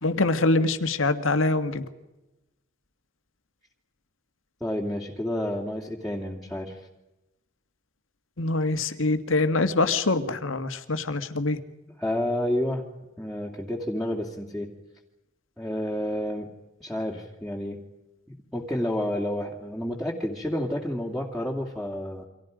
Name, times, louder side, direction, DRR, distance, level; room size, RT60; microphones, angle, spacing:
voice 1, 0.0-1.8 8.4-11.6, left 2 dB, 90° left, 10 dB, 1.9 m, -24 dB
voice 2, 4.6-6.8 12.0-12.8 13.2-14.7 15.6-16.5 16.8-17.8 18.3-22.3, left 1 dB, ahead, -4 dB, 2.4 m, -30 dB
29.0 x 25.5 x 5.2 m, 1.0 s
head